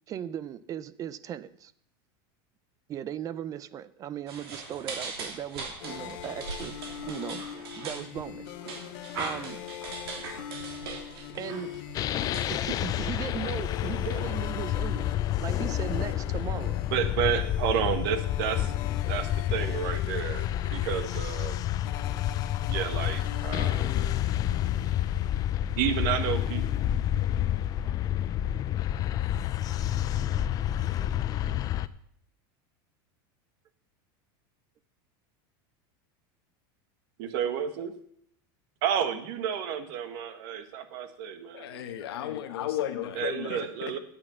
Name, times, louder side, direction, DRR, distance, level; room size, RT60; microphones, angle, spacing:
voice 1, 0.1-1.7 2.9-6.8 7.1-7.5 7.7-8.5 9.2-9.6 11.4-11.7 12.5-15.1 15.4-16.8, right 9 dB, 25° right, 0.4 m, -37 dB
sound 1, 4.3-13.3, right 4 dB, 85° right, 3.0 m, -40 dB
sound 2, 5.8-25.5, left 12 dB, 55° left, 0.7 m, -42 dB
sound 3, 11.9-31.9, left 12 dB, 30° left, 0.4 m, -29 dB
voice 2, 16.9-18.7 19.1-20.5 20.7-21.6 22.7-24.0 25.8-26.6 37.2-37.9 38.8-41.8 43.2-44.0, right 9 dB, 60° right, 1.4 m, -31 dB
voice 3, 41.5-44.0, left 11 dB, 90° left, 1.3 m, -34 dB
8.6 x 7.4 x 7.3 m
supercardioid pair, 145°, 13 cm